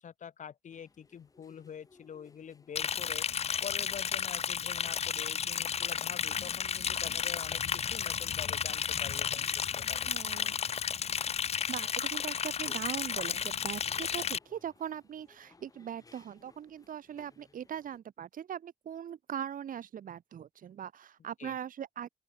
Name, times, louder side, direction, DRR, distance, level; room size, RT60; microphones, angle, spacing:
voice 1, 0.0-3.3 3.6-10.1 21.4-21.6, left 8 dB, 65° left, 2.3 m, -46 dB
sound 1, 0.7-18.0, left 3 dB, 25° left, 6.1 m, -64 dB
Liquid, 2.8-14.4, left 7 dB, 50° left, 0.7 m, -33 dB
voice 2, 10.1-10.6 11.7-22.1, right 9 dB, 85° right, 1.4 m, -40 dB
open air
wide cardioid pair, 175°, 14 cm